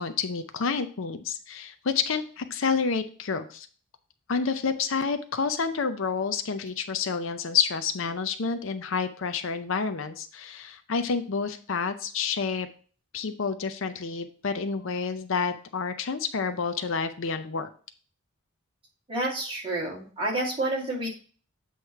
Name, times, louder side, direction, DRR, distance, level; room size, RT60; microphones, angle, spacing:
voice 1, 0.0-3.7 4.3-12.7 13.1-17.7, left 5 dB, 65° left, 9 dB, 0.5 m, -29 dB
voice 2, 19.1-21.1, right 1 dB, 25° right, -4 dB, 2.2 m, -29 dB
8.0 x 3.1 x 5.7 m, 0.40 s
head